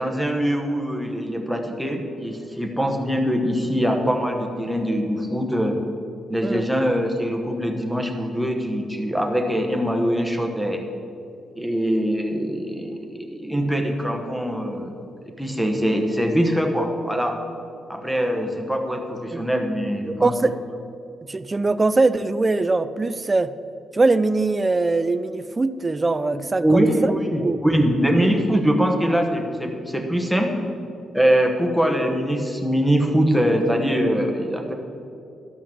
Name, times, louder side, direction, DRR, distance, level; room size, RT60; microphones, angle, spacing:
voice 1, 0.0-5.8 6.3-10.8 11.6-14.9 15.4-17.4 17.9-20.3 26.6-30.5 31.1-34.7, equal, ahead, 3 dB, 1.0 m, -22 dB
voice 2, 20.1-20.6 21.2-23.5 23.9-27.1 27.4-27.6, right 3 dB, 20° right, 13 dB, 0.4 m, -22 dB
12.0 x 5.6 x 6.9 m, 2.6 s
cardioid pair, 150°, 0 cm